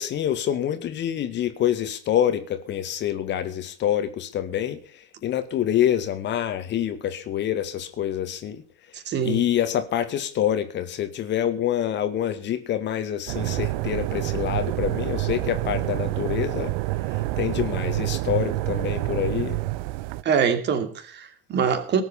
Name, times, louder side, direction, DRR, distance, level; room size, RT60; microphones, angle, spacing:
voice 1, 0.0-8.6 9.2-16.7 17.4-19.6, left 10 dB, 40° left, 2.0 m, -26 dB
voice 2, 8.9-9.4 20.2-22.0, right 6 dB, 35° right, 2.7 m, -24 dB
sound 1, 13.3-20.2, right 18 dB, 55° right, 0.7 m, -27 dB
18.5 x 8.2 x 7.1 m
figure-of-eight pair, 75°, 29 cm